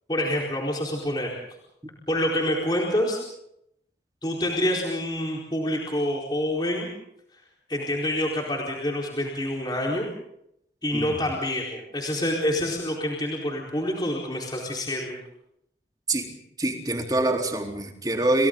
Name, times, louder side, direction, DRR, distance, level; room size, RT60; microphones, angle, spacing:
voice 1, 0.1-1.3 2.1-3.2 4.2-6.9 7.7-10.1 10.8-15.1, left 1 dB, 25° left, -2 dB, 4.4 m, -27 dB
voice 2, 16.6-18.5, right 2 dB, 20° right, 2 dB, 3.8 m, -25 dB
30.0 x 29.0 x 3.9 m, 0.77 s
head